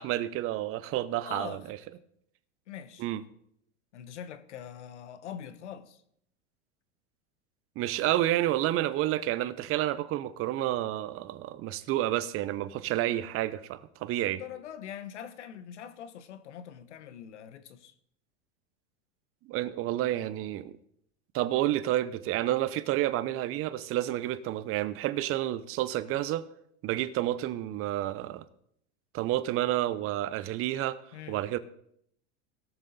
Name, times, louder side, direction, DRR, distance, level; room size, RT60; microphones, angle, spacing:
voice 1, 0.0-1.8 3.0-3.2 7.8-14.4 19.4-20.8 21.3-26.4 26.8-28.5 29.1-31.0 31.3-31.6, right 14 dB, 40° right, 0.8 m, -30 dB
voice 2, 1.2-1.6 2.7-3.1 3.9-6.0 14.1-17.9 31.1-31.4, left 9 dB, 90° left, 1.1 m, -43 dB
18.5 x 6.5 x 4.1 m
supercardioid pair, 115°, 34 cm